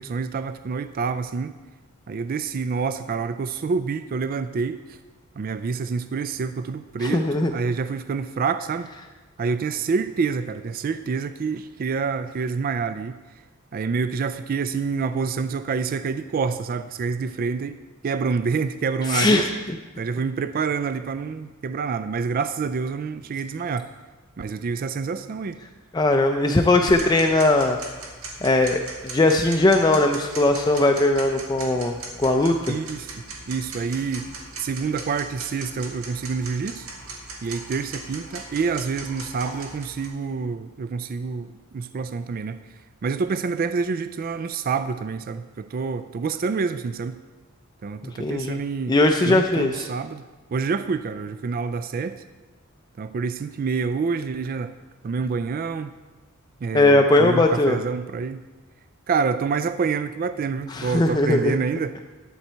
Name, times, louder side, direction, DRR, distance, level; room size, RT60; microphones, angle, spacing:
voice 1, 0.0-1.6 2.1-5.0 5.4-7.3 7.5-8.9 9.4-13.2 13.7-17.8 18.0-19.5 20.0-23.9 24.4-25.6 32.7-33.1 33.5-34.3 34.6-36.9 37.4-42.6 43.0-47.2 47.8-49.0 49.2-50.2 50.5-52.2 53.0-54.7 55.0-55.9 56.6-58.4 59.1-61.9, right 5 dB, 45° right, 12 dB, 0.3 m, -27 dB
voice 2, 7.0-7.5 19.1-19.5 25.9-27.8 28.4-32.8 48.2-48.6 48.9-49.9 56.7-57.8 60.7-61.6, left 2 dB, 20° left, 4 dB, 0.4 m, -19 dB
Tick-tock, 26.9-40.1, right 3 dB, 80° right, 1.8 m, -39 dB
11.5 x 7.9 x 4.4 m, 1.3 s
head